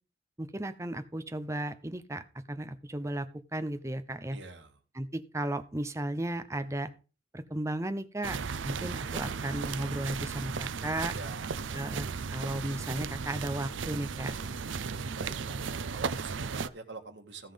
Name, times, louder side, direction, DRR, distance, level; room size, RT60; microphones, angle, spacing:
voice 1, 0.4-2.2 2.5-4.4 4.9-6.9 7.3-8.4 8.6-11.1 11.7-14.3, right 1 dB, 15° right, 9 dB, 0.7 m, -35 dB
voice 2, 4.3-4.7 11.1-11.6 15.2-17.5, right 3 dB, 70° right, 4 dB, 1.8 m, -45 dB
sound 1, 8.2-16.7, right 5 dB, 90° right, 0.6 m, -35 dB
15.5 x 5.6 x 5.2 m, 0.35 s
head